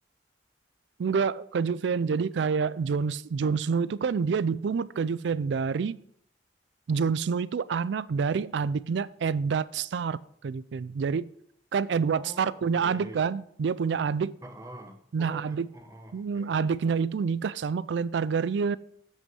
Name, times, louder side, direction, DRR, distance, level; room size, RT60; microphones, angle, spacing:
voice 1, 1.0-6.0 6.9-11.3 11.7-14.3 15.1-15.7 16.1-18.8, right 5 dB, 80° right, 0.4 m, -27 dB
voice 2, 12.1-13.3 14.4-16.6, right 1 dB, 20° right, 1.0 m, -46 dB
7.7 x 6.2 x 6.1 m
head